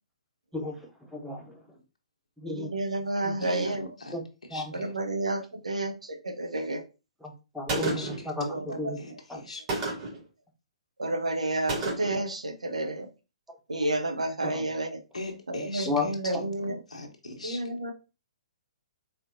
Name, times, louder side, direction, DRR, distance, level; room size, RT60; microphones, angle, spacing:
voice 1, 0.5-1.6 2.4-2.7 3.2-3.4 4.1-4.2 4.5-4.8 7.2-9.0 9.3-9.4 13.5-13.6 14.4-14.6 15.9-16.4, left 2 dB, ahead, 0 dB, 0.8 m, -34 dB
voice 2, 2.5-3.8 4.7-6.8 8.4-8.9 11.0-13.1 13.7-15.0 15.5-16.7 17.4-17.9, right 2 dB, 75° right, 4 dB, 0.9 m, -31 dB
voice 3, 3.4-4.2 4.5-4.9 7.8-9.6 15.1-17.6, left 2 dB, 75° left, 2 dB, 0.7 m, -40 dB
Gunshot gunfire, 7.7-8.3 9.7-10.2 11.7-12.2, right 2 dB, 30° right, 2.0 m, -31 dB
4.3 x 3.3 x 2.6 m, 0.30 s
figure-of-eight pair, 125°, 4 cm